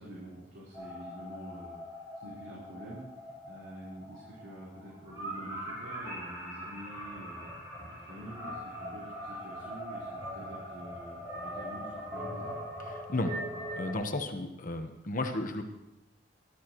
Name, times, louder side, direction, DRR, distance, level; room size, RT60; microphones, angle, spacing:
voice 1, 0.0-3.0 3.5-7.5 7.8-12.5, right 1 dB, 85° right, -7 dB, 4.1 m, -47 dB
sound 1, 0.7-13.9, equal, 20° right, 4.9 m, -41 dB
voice 2, 12.9-13.4 13.8-15.6, left 2 dB, 45° left, 5 dB, 1.1 m, -33 dB
20.0 x 12.5 x 3.1 m, 0.92 s
head